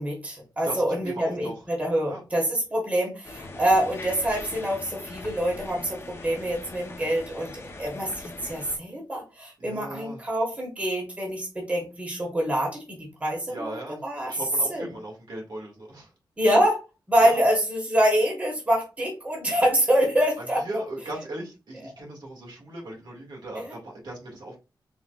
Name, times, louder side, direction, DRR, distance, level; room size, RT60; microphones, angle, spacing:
voice 1, 0.0-7.5 7.8-13.7 14.0-14.3 14.7-14.9 16.4-16.8 17.1-20.8 23.5-23.7, equal, 20° right, -1 dB, 1.3 m, -25 dB
voice 2, 0.6-1.5 2.1-2.2 9.6-10.2 13.5-16.1 17.2-17.5 20.4-24.6, right 1 dB, 70° right, -2 dB, 1.8 m, -38 dB
sound 1, 3.2-8.8, left 3 dB, 30° left, 0.6 m, -41 dB
4.2 x 3.8 x 2.3 m, 0.29 s
wide cardioid pair, 175°, 8 cm